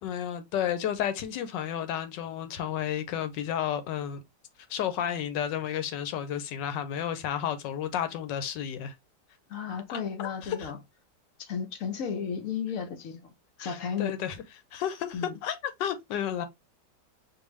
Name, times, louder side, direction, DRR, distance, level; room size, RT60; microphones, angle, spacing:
voice 1, 0.0-4.2 4.7-8.9 9.9-10.7 13.6-14.4 14.7-16.5, left 9 dB, 85° left, 1.3 m, -32 dB
voice 2, 9.5-10.8 11.5-13.3 13.6-14.1 15.1-15.4, left 7 dB, 65° left, 0.9 m, -33 dB
4.6 x 2.6 x 3.1 m
omnidirectional pair, 1.9 m